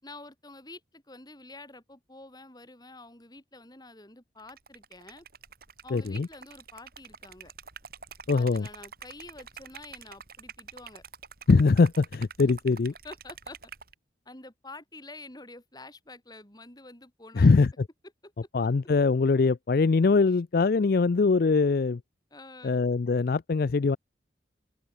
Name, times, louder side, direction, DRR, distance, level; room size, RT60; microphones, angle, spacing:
voice 1, 0.0-5.2 5.8-7.5 8.3-11.0 13.0-13.6 14.2-17.6 18.2-18.3 22.3-22.8, left 2 dB, 20° left, 5.1 m, -48 dB
Liquid, 4.4-13.9, right 6 dB, 55° right, 6.2 m, -47 dB
voice 2, 5.9-6.3 8.3-8.7 11.5-12.9 17.4-17.7 18.5-22.0 22.6-24.0, left 4 dB, 55° left, 0.4 m, -22 dB
open air
head